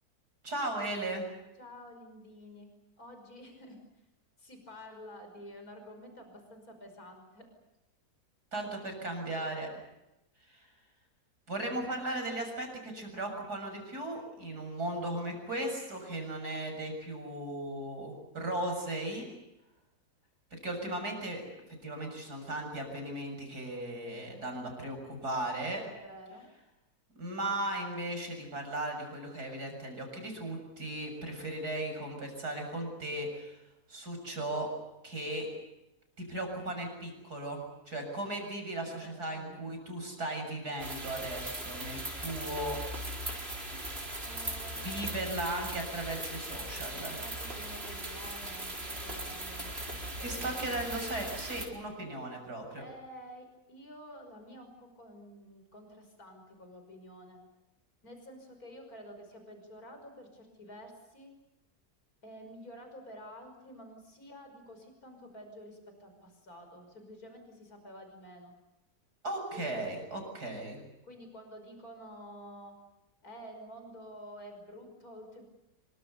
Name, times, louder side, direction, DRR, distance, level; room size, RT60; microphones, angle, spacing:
voice 1, 0.4-1.3 8.5-9.7 10.5-10.7 11.5-19.2 20.5-21.4 21.8-25.8 27.2-33.6 33.9-34.7 35.0-35.5 36.2-42.8 44.8-47.2 50.2-52.8 69.2-70.8, right 1 dB, 80° right, 4 dB, 7.5 m, -37 dB
voice 2, 1.6-2.7 3.0-3.8 4.4-7.5 24.2-24.5 25.7-26.5 39.0-39.6 44.2-45.2 47.1-50.9 52.8-57.4 58.0-61.3 62.2-68.5 69.5-69.9 71.0-72.7 73.2-75.4, equal, 65° left, 5 dB, 6.1 m, -50 dB
sound 1, 40.8-51.7, right 1 dB, 40° right, 4.7 m, -39 dB
27.0 x 24.5 x 6.8 m, 0.94 s
omnidirectional pair, 1.7 m